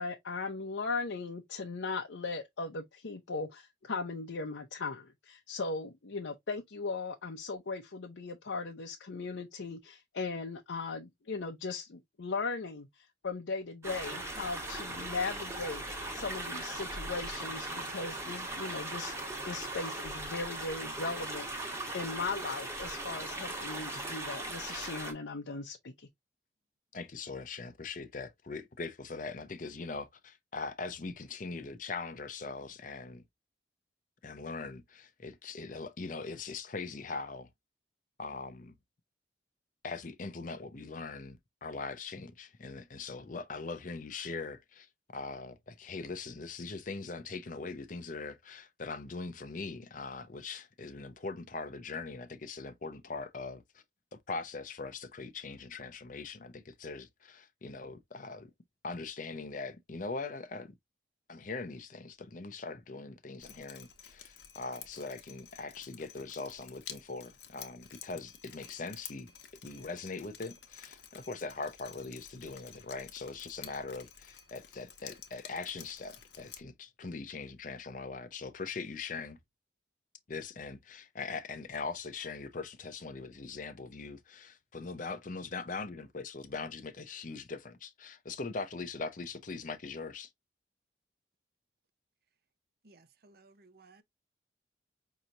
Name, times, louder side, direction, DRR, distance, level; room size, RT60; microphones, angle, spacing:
voice 1, 0.0-19.2 19.5-26.1, left 4 dB, 85° left, 0.7 m, -38 dB
sound 1, 13.8-25.1, right 2 dB, 15° right, 1.2 m, -39 dB
voice 2, 26.9-33.2 34.2-37.5 38.2-38.7 39.8-53.8 54.1-58.5 58.8-60.7 61.3-69.3 69.6-79.4 80.3-90.3, left 4 dB, 45° left, 0.6 m, -41 dB
Drip, 63.4-76.6, left 9 dB, 65° left, 1.0 m, -51 dB
voice 3, 92.8-94.0, right 3 dB, 55° right, 0.7 m, -60 dB
5.5 x 2.9 x 2.5 m
head